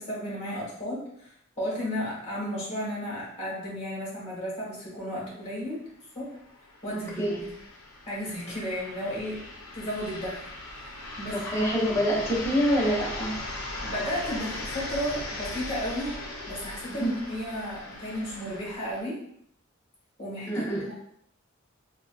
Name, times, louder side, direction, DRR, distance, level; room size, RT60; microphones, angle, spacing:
voice 1, 0.0-5.8 6.1-6.4 6.8-7.4 8.0-9.4 9.7-10.5 10.7-11.7 13.8-16.2 16.5-19.2 20.2-20.6, equal, 30° left, -6 dB, 1.4 m, -33 dB
sound 1, 4.9-5.0 5.3-5.4 6.2-19.0, left 2 dB, 85° left, 0.6 m, -39 dB
voice 2, 11.3-13.4 16.9-17.1 20.5-20.9, equal, 15° left, -6 dB, 0.8 m, -26 dB
3.7 x 2.2 x 2.3 m, 0.71 s
head